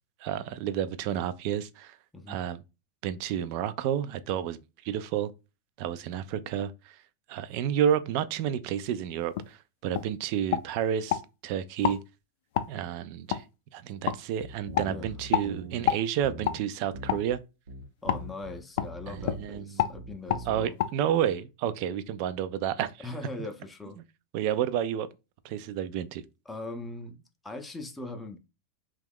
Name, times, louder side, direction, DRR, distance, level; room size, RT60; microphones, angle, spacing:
voice 1, 0.2-2.0 2.3-2.6 3.0-4.6 4.8-5.3 5.8-7.0 7.3-12.0 12.7-13.4 13.7-17.4 19.1-19.9 20.5-23.1 24.3-25.1 25.4-26.2, right 9 dB, 55° right, 0.3 m, -30 dB
sound 1, 9.3-9.5 9.9-10.1 10.5-11.2 11.8-12.0 12.5-12.7 13.3-13.4 14.1-14.2 14.7-14.9 15.3-15.5 15.9-16.0 16.4-16.6 17.1-17.2 18.1-18.2 18.8-18.9 19.2-19.4 19.8-19.9 20.3-20.4 20.8-20.9, left 11 dB, 65° left, 0.4 m, -27 dB
sound 2, 14.4-15.9 16.2-16.6 16.9-17.4 17.7-19.6 19.9-20.7, right 2 dB, 85° right, 0.7 m, -42 dB
voice 2, 14.9-15.2 18.0-20.8 23.0-24.0 26.5-28.4, left 2 dB, 10° left, 0.5 m, -40 dB
2.9 x 2.3 x 3.4 m
hypercardioid pair, 125°, 0 cm